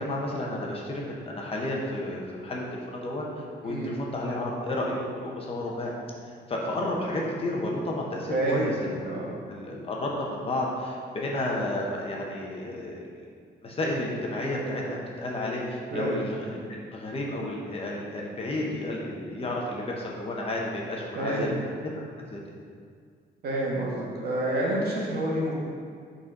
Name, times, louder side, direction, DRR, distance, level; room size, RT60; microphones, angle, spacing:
voice 1, 0.0-6.0 6.3-9.1 9.5-13.1 13.6-14.8 15.2-21.5 22.3-22.6, left 1 dB, 30° left, -2 dB, 1.0 m, -32 dB
voice 2, 3.6-3.9 8.3-8.7 9.0-9.4 15.9-16.2 21.1-21.6 23.4-25.5, right 1 dB, 60° right, -4 dB, 1.6 m, -28 dB
6.3 x 4.2 x 5.3 m, 2.1 s
cardioid pair, 155°, 19 cm